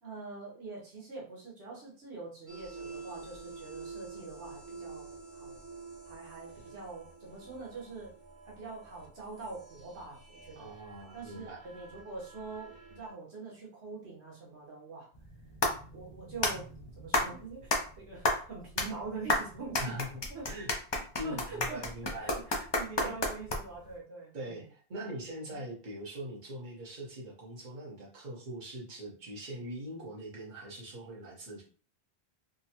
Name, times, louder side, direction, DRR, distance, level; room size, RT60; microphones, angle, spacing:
voice 1, 0.0-5.6 6.1-8.2 8.4-10.7 11.1-15.1 15.9-16.7 17.0-20.0 20.3-20.4 21.2-21.9 22.2-24.7, right 4 dB, 85° right, -3 dB, 1.3 m, -44 dB
sound 1, 2.5-13.1, right 4 dB, 30° right, 0.8 m, -49 dB
voice 2, 10.5-11.6 19.8-20.7 21.2-22.7 23.0-23.1 24.3-31.6, right 1 dB, 50° right, -5 dB, 1.2 m, -42 dB
sound 2, 15.1-23.9, left 2 dB, 35° left, 0.4 m, -32 dB
3.6 x 2.1 x 2.8 m, 0.40 s
omnidirectional pair, 1.1 m